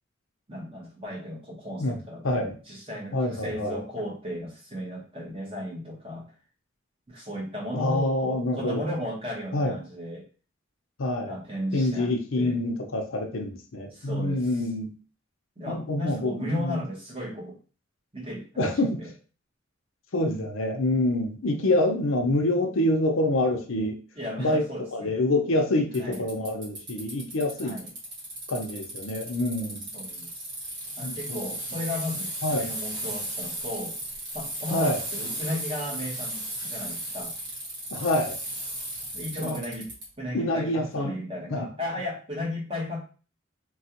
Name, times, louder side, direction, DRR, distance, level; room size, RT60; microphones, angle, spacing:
voice 1, 0.5-6.3 7.1-10.2 11.3-12.1 12.4-12.6 13.9-14.6 15.6-17.6 18.1-18.7 19.0-19.1 24.2-25.1 26.0-26.2 27.6-27.9 29.9-30.4 31.0-34.0 34.3-37.3 39.1-43.0, left 1 dB, 25° right, -3 dB, 1.1 m, -35 dB
voice 2, 2.2-2.5 3.1-3.8 7.7-8.9 9.5-9.7 11.0-11.4 11.7-14.9 15.7-16.8 18.6-19.0 20.1-24.0 24.4-24.6 24.9-27.8 28.5-29.8 31.0-31.4 32.4-32.7 34.7-35.0 37.9-38.4 39.4-39.6 40.3-41.1 41.5-41.7, left 1 dB, 90° left, 3 dB, 0.6 m, -26 dB
Bicycle, 25.9-40.0, right 1 dB, 60° right, 1.6 m, -35 dB
3.3 x 2.3 x 2.8 m, 0.37 s
head